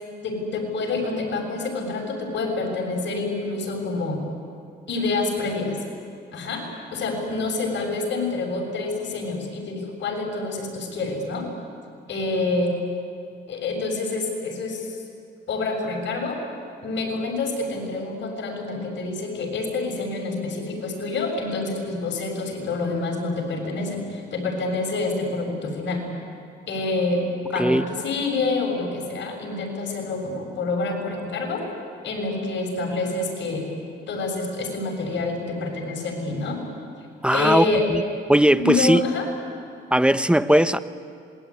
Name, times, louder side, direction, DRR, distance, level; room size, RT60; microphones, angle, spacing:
voice 1, 0.2-4.2 4.9-5.8 6.3-11.5 12.1-12.7 13.5-14.9 15.5-16.4 16.8-26.0 26.7-31.7 32.0-33.7 34.1-36.6 37.3-37.9 38.6-39.3, left 3 dB, 65° left, 2 dB, 6.9 m, -27 dB
voice 2, 37.2-38.0 38.3-39.0 39.9-40.8, right 1 dB, 5° right, 13 dB, 0.9 m, -18 dB
26.5 x 21.5 x 9.8 m, 2.4 s
cardioid pair, 90°, 20 cm